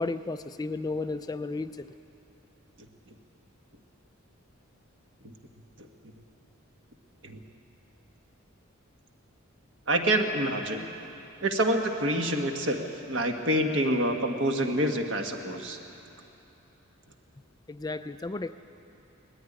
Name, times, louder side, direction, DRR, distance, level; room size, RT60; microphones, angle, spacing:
voice 1, 0.0-1.9 17.7-18.5, left 3 dB, 20° left, 10 dB, 0.4 m, -33 dB
voice 2, 9.9-10.9 11.4-15.8, right 1 dB, 60° right, 3 dB, 1.7 m, -27 dB
19.0 x 14.0 x 10.0 m, 2.9 s
head